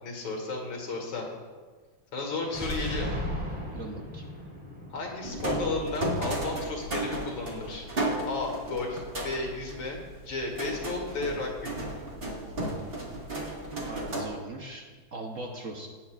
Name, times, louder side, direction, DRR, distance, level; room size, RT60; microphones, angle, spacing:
voice 1, 0.0-1.2 2.1-3.1 4.9-7.9 8.3-11.7, left 3 dB, 85° left, 0 dB, 2.7 m, -33 dB
sound 1, 2.4-6.3, equal, 5° right, 3.1 m, -36 dB
voice 2, 3.7-4.2 13.9-15.9, right 2 dB, 55° right, 1 dB, 1.0 m, -40 dB
sound 2, 5.2-14.2, right 1 dB, 30° right, 1.7 m, -34 dB
17.0 x 8.9 x 2.4 m, 1.4 s
omnidirectional pair, 2.1 m